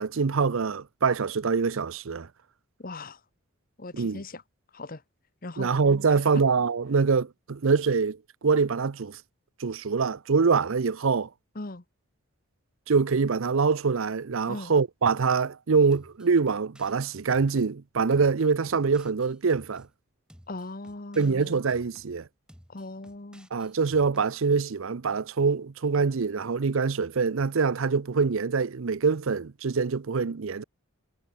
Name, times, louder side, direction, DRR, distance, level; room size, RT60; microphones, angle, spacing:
voice 1, 0.0-2.3 3.9-4.2 5.6-9.2 9.6-11.3 12.9-19.9 21.2-22.3 23.5-30.6, right 5 dB, 65° right, 0.6 m, -25 dB
voice 2, 2.8-3.2 3.8-4.4 4.7-5.0 5.4-5.7 6.3-6.4 11.5-11.8 14.5-14.7 20.5-21.6 22.7-23.5, left 2 dB, 40° left, 1.2 m, -38 dB
sound 1, 15.9-17.7 18.1-19.9 20.3-22.1 22.5-24.3, equal, 5° right, 6.0 m, -54 dB
head